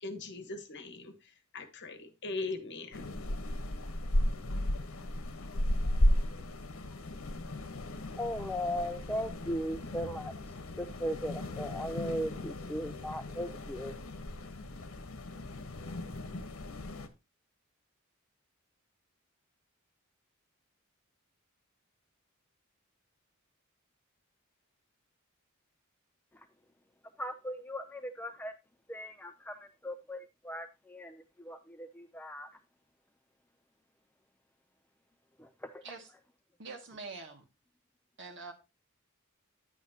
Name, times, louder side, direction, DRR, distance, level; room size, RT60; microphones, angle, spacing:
voice 1, 0.0-3.1, left 3 dB, 55° left, 1.3 m, -40 dB
sound 1, 2.9-17.1, left 1 dB, 75° left, 1.1 m, -35 dB
voice 2, 8.2-10.3 10.8-13.9 27.2-28.5 28.9-32.5 35.4-35.5, equal, 10° left, 0.5 m, -38 dB
voice 3, 35.8-36.1 36.6-37.4 38.2-38.5, right 4 dB, 60° right, 2.0 m, -45 dB
10.0 x 8.3 x 2.8 m
head